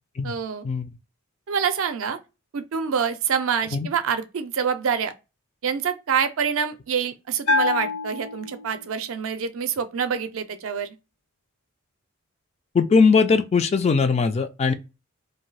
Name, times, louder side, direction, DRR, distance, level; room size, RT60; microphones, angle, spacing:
voice 1, 0.2-0.6 1.5-2.2 2.5-5.1 5.6-11.0, right 7 dB, 70° right, 0.5 m, -26 dB
Bell, 7.5-9.1, left 3 dB, 80° left, 0.8 m, -26 dB
voice 2, 12.7-14.7, left 5 dB, 30° left, 0.3 m, -20 dB
2.6 x 2.3 x 3.1 m
head